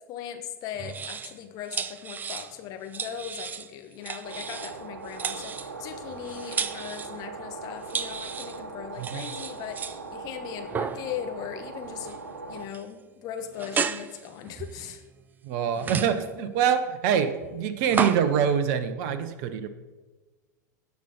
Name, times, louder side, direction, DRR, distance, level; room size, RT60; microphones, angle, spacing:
voice 1, 0.0-12.2 12.5-15.0, left 9 dB, 40° left, 6 dB, 1.2 m, -39 dB
sound 1, 0.7-1.4 1.7-2.6 2.9-3.7 4.0-4.8 5.0-7.2 7.9-8.6 9.0-10.0 10.6-11.2 12.0-12.3 12.6-12.8 13.6-15.2 15.7-16.4 17.4-18.3, right 6 dB, 20° right, 0.5 m, -33 dB
sound 2, 4.2-12.6, right 3 dB, 70° right, 1.2 m, -40 dB
voice 2, 15.4-19.7, right 8 dB, 50° right, 10 dB, 0.9 m, -25 dB
16.5 x 5.8 x 4.3 m, 1.3 s
figure-of-eight pair, 90°, 10 cm